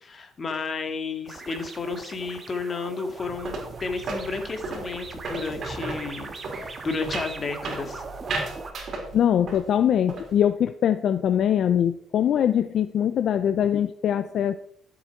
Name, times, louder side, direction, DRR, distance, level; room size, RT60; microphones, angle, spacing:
voice 1, 0.0-8.0, left 4 dB, 35° left, 6 dB, 2.2 m, -32 dB
sound 1, 1.3-8.7, right 4 dB, 35° right, 1.8 m, -40 dB
sound 2, 3.2-9.7 9.9-10.4, right 3 dB, 55° right, 4.2 m, -35 dB
voice 2, 9.1-14.6, left 9 dB, 65° left, 11 dB, 0.6 m, -22 dB
14.0 x 7.9 x 4.6 m, 0.65 s
cardioid pair, 100°, 0 cm